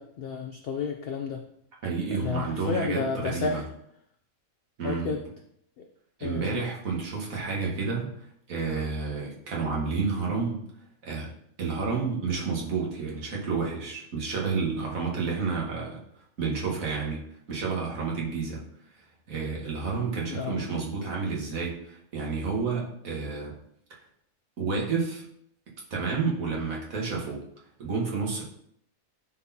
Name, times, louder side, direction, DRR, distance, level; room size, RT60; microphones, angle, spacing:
voice 1, 0.0-1.4 2.2-3.6 4.8-5.2 5.8-5.9 6.2-6.7 20.3-20.6, left 5 dB, 60° left, 4 dB, 0.6 m, -31 dB
voice 2, 1.8-3.6 4.8-5.2 6.2-10.6 11.0-11.3 11.6-16.0 16.4-18.6 19.3-23.5 24.6-25.2 25.9-27.4 27.8-28.4, right 4 dB, 80° right, -3 dB, 1.8 m, -30 dB
9.7 x 4.0 x 2.8 m, 0.71 s
omnidirectional pair, 1.4 m